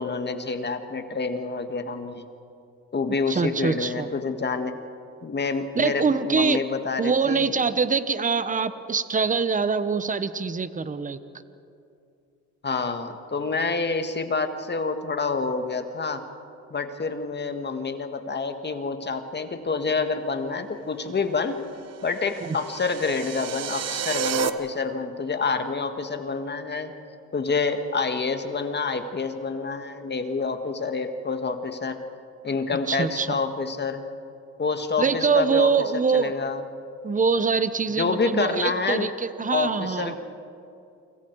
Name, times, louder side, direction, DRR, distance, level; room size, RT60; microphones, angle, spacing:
voice 1, 0.0-2.3 2.9-4.7 5.2-7.5 12.6-16.2 16.7-21.6 22.0-26.9 27.3-32.0 32.4-34.0 34.6-35.7 36.1-36.6 38.0-39.1 39.5-40.2, left 4 dB, 35° left, 7 dB, 1.9 m, -27 dB
voice 2, 3.3-4.1 5.8-6.6 7.0-11.2 22.4-22.6 32.9-33.4 35.0-36.3 37.0-40.2, right 5 dB, 25° right, 12 dB, 1.1 m, -24 dB
sound 1, 21.9-24.5, right 8 dB, 55° right, 1.2 m, -30 dB
29.0 x 26.0 x 4.8 m, 2.6 s
cardioid pair, 90°, 30 cm